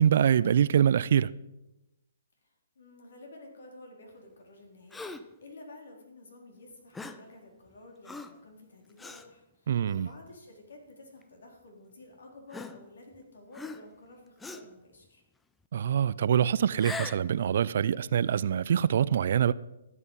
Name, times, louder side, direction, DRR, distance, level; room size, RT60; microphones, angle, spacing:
voice 1, 0.0-1.3 9.7-10.1 15.7-19.5, right 9 dB, 55° right, 0.4 m, -24 dB
voice 2, 2.4-15.2, left 2 dB, 70° left, 3.8 m, -52 dB
Gasp, 4.9-5.4 6.9-7.3 8.0-8.4 9.0-9.3 10.0-10.1 11.2-11.3 12.5-13.2 13.5-14.0 14.4-14.8 16.7-17.3, left 3 dB, 5° left, 0.5 m, -41 dB
14.0 x 8.3 x 5.5 m
hypercardioid pair, 145°, 0 cm